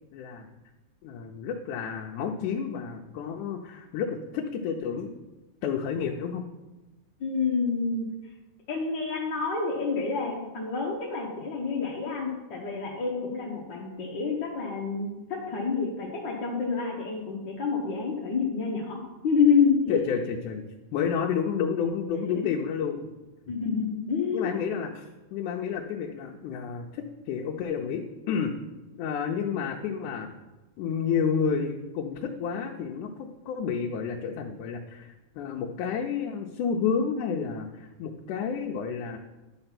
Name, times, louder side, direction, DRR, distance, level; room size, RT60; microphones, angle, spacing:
voice 1, 0.1-0.5 1.0-5.2 5.6-6.4 19.9-20.6 20.9-23.1 24.3-28.5 28.9-30.3 30.8-35.1 35.4-39.2, left 6 dB, 90° left, 1 dB, 2.2 m, -30 dB
voice 2, 7.2-8.1 8.7-20.0 22.1-22.5 23.5-24.5, left 5 dB, 60° left, -3 dB, 1.2 m, -28 dB
10.5 x 4.4 x 5.8 m, 1.1 s
omnidirectional pair, 3.4 m